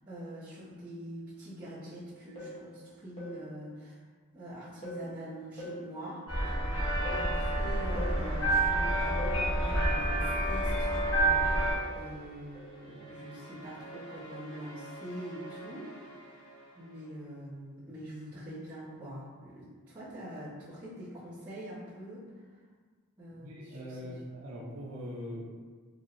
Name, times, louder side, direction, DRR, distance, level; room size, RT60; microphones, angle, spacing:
voice 1, 0.1-4.0 4.3-6.8 7.1-16.4 16.7-22.4 23.2-24.2 24.6-24.7, equal, 25° right, -18 dB, 1.3 m, -44 dB
sound 1, 2.4-2.7 3.2-3.5 4.8-5.1 5.6-5.9 7.0-7.4 8.0-8.3 9.2-9.5 11.8-12.0 12.5-12.8, equal, 25° left, 1.0 m, -41 dB
sound 2, 6.3-11.7, right 1 dB, 65° left, 1.2 m, -28 dB
sound 3, 6.9-17.3, right 1 dB, 50° left, 1.3 m, -49 dB
voice 2, 23.4-25.5, equal, 80° right, -3 dB, 0.8 m, -41 dB
4.7 x 2.7 x 2.6 m, 1.5 s
head